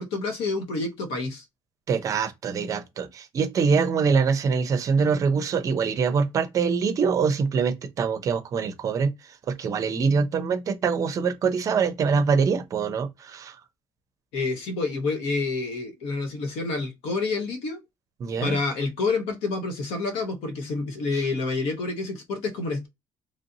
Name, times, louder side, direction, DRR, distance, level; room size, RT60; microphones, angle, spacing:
voice 1, 0.0-1.4 14.3-17.8 18.4-22.9, left 3 dB, 90° left, 1.1 m, -28 dB
voice 2, 1.9-13.6 18.2-18.6 21.1-21.3, right 5 dB, 35° right, 0.5 m, -24 dB
3.2 x 2.6 x 2.6 m
cardioid pair, 170°, 10 cm